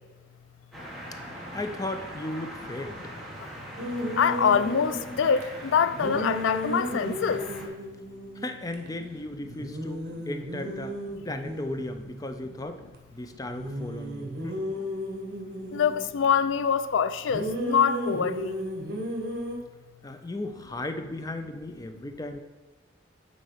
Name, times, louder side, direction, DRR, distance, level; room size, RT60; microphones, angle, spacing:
sound 1, 0.7-7.7, equal, ahead, 1.3 m, -41 dB
voice 1, 1.5-3.1 8.4-11.0 11.2-12.8 13.1-14.8 20.0-22.4, left 2 dB, 20° left, 0.4 m, -36 dB
sound 2, 3.8-5.4 6.0-8.9 9.1-9.2 9.5-12.9 13.5-16.2 17.3-19.5, equal, 55° right, 1.4 m, -34 dB
voice 2, 4.2-5.4 5.7-7.4 15.7-18.5, left 7 dB, 85° left, 0.4 m, -24 dB
8.5 x 4.1 x 5.6 m
head